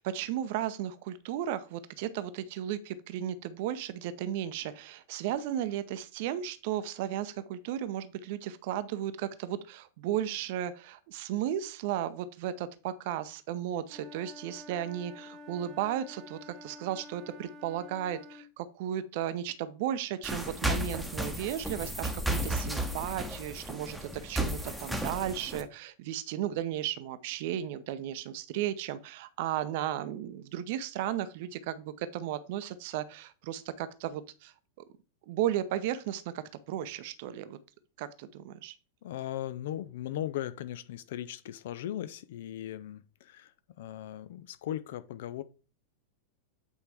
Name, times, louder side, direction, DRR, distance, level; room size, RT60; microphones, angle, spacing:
voice 1, 0.0-34.5 35.3-37.6 38.0-38.7, right 11 dB, 50° right, 0.7 m, -35 dB
Wind instrument woodwind instrument, 13.9-18.5, left 1 dB, 30° right, 1.1 m, -49 dB
sound 1, 20.2-25.6, right 1 dB, 5° right, 1.0 m, -33 dB
voice 2, 39.0-43.5 43.8-45.4, left 12 dB, 55° left, 0.6 m, -38 dB
8.3 x 4.4 x 3.5 m
figure-of-eight pair, 90°, 0 cm